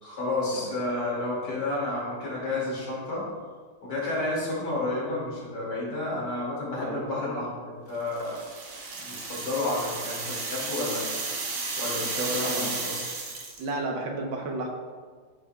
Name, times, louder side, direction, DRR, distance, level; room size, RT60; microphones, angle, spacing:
voice 1, 0.0-3.3 3.8-8.4 9.0-11.1 11.7-13.0, left 2 dB, 55° left, -6 dB, 2.7 m, -31 dB
sound 1, 8.1-13.7, right 3 dB, 60° right, 1.5 m, -33 dB
voice 2, 12.2-12.7 13.6-14.7, right 2 dB, 80° right, 2 dB, 1.6 m, -32 dB
10.5 x 5.1 x 2.2 m, 1.5 s
omnidirectional pair, 2.2 m